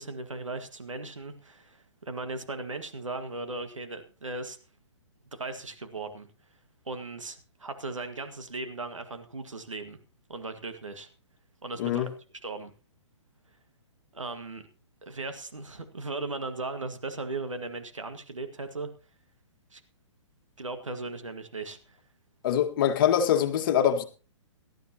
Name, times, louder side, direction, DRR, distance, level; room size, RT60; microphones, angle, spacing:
voice 1, 0.0-4.6 5.3-6.3 6.9-10.0 10.3-11.1 11.6-12.1 12.4-12.7 14.1-14.6 15.0-18.9 19.7-19.8 20.6-22.0, right 3 dB, 90° right, 1.9 m, -37 dB
voice 2, 11.8-12.1 22.4-24.0, left 9 dB, 45° left, 1.8 m, -24 dB
18.5 x 13.0 x 2.9 m
figure-of-eight pair, 130°, 16 cm